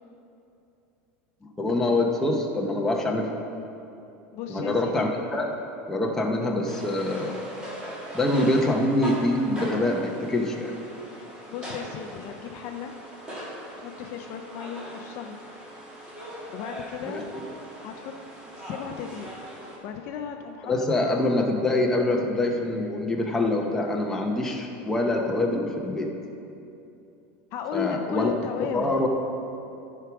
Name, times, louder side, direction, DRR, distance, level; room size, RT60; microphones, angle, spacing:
voice 1, 1.6-3.3 4.5-5.5 5.9-7.5 8.1-10.7 17.1-17.2 20.7-26.1 27.7-28.3 28.7-29.1, left 2 dB, 5° left, 0 dB, 0.8 m, -25 dB
voice 2, 4.3-5.0 11.2-12.9 13.8-15.4 16.5-17.3 17.8-18.1 18.6-19.3 19.8-21.1 27.5-28.9, left 8 dB, 40° left, 5 dB, 0.5 m, -35 dB
sound 1, 6.7-19.8, equal, 15° right, 1.6 m, -40 dB
13.0 x 4.7 x 6.0 m, 2.8 s
supercardioid pair, 165°, 7 cm